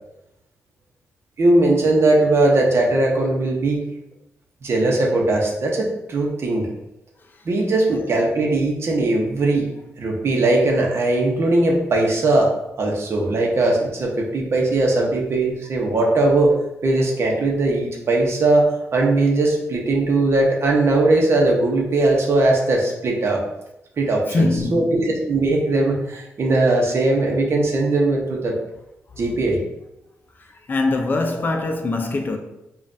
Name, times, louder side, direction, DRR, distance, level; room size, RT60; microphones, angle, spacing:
voice 1, 1.4-3.8 4.6-6.7 7.4-9.7 10.0-12.5 12.8-16.5 16.8-23.4 24.0-28.5 29.2-29.6, right 2 dB, 50° right, 0.9 m, -19 dB
voice 2, 24.3-25.0 30.7-32.4, left 2 dB, 35° left, 0.5 m, -22 dB
5.1 x 2.4 x 2.6 m
cardioid pair, 105°, 5 cm